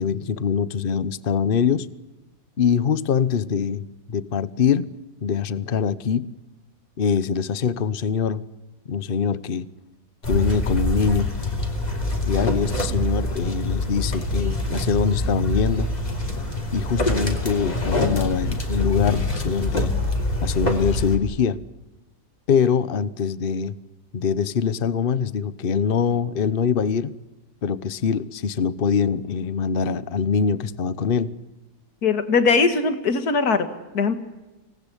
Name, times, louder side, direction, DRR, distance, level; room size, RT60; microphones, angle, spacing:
voice 1, 0.0-1.9 2.6-4.9 5.2-6.3 7.0-8.5 8.9-9.7 10.3-11.3 12.3-15.9 16.7-19.9 20.4-21.6 22.5-23.7 24.1-27.1 27.6-31.3, left 6 dB, 40° left, 1.0 m, -23 dB
sound 1, 10.2-21.2, left 1 dB, 25° left, 3.3 m, -25 dB
voice 2, 32.0-33.7 33.9-34.1, left 4 dB, 65° left, 2.4 m, -20 dB
26.0 x 19.0 x 10.0 m
omnidirectional pair, 1.7 m